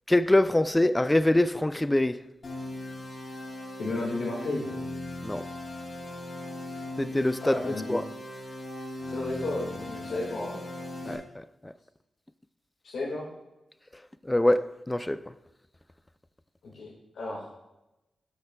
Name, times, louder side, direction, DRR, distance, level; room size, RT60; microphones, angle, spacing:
voice 1, 0.1-2.2 5.2-5.4 7.0-8.0 11.0-11.7 14.2-15.3, left 1 dB, 15° left, 0.4 m, -24 dB
sound 1, 2.4-11.1, left 1 dB, 55° left, 2.3 m, -39 dB
voice 2, 3.8-4.6 6.7-6.8 7.4-7.9 9.0-10.6 12.8-13.3 16.6-17.5, left 2 dB, 85° left, 1.8 m, -33 dB
14.0 x 6.5 x 2.3 m
cardioid pair, 65°, 0 cm